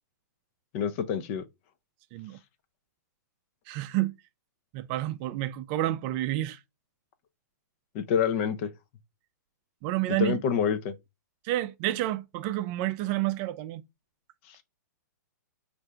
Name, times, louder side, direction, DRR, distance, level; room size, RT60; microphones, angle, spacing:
voice 1, 0.7-1.5 7.9-8.7 10.1-10.9, left 7 dB, 45° left, 0.6 m, -27 dB
voice 2, 3.7-4.1 4.7-6.6 9.8-10.4 11.4-13.8, right 15 dB, 35° right, 0.4 m, -29 dB
4.4 x 2.6 x 3.3 m
hypercardioid pair, 115°, 10 cm